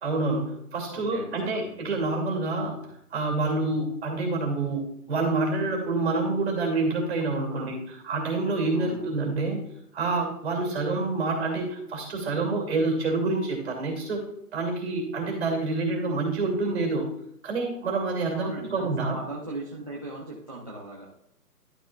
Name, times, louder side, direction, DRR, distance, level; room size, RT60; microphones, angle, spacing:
voice 1, 0.0-2.8 3.1-7.8 8.0-9.6 9.9-14.2 14.5-17.1 17.4-19.2, right 3 dB, 40° right, 1 dB, 2.6 m, -27 dB
voice 2, 0.9-1.7 7.5-7.7 8.7-9.1 18.3-21.1, right 2 dB, 25° right, -6 dB, 0.6 m, -38 dB
11.0 x 6.0 x 2.4 m, 0.76 s
hypercardioid pair, 165°, 47 cm